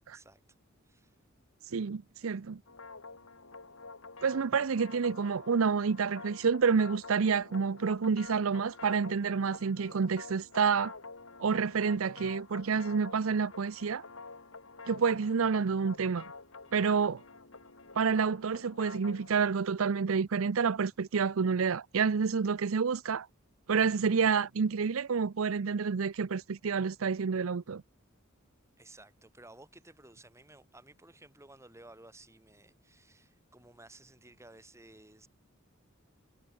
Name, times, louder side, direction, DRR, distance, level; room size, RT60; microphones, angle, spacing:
voice 1, 0.1-0.4 0.8-1.2 28.8-35.3, right 2 dB, 15° right, 6.6 m, -55 dB
voice 2, 1.7-2.6 4.2-10.9 11.4-14.0 14.9-16.2 16.7-17.2 18.0-23.3 23.7-27.8, right 5 dB, 80° right, 0.6 m, -29 dB
sound 1, 2.7-19.4, left 3 dB, 70° left, 3.2 m, -48 dB
head